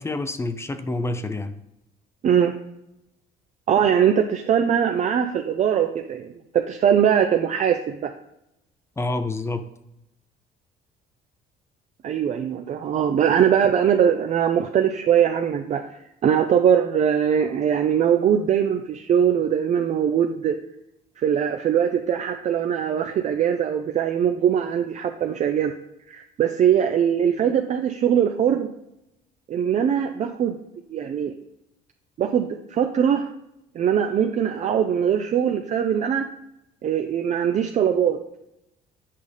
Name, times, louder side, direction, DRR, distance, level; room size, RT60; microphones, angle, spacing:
voice 1, 0.0-1.5 9.0-9.7, left 2 dB, 15° left, 10 dB, 0.6 m, -28 dB
voice 2, 2.2-2.6 3.7-8.1 12.0-15.9 16.2-20.6 21.2-25.7 26.1-28.7 29.5-30.6 30.9-31.3 32.2-33.3 33.7-36.3 36.8-38.2, right 8 dB, 45° right, 5 dB, 0.5 m, -21 dB
8.4 x 5.4 x 3.3 m, 0.85 s
cardioid pair, 110°, 17 cm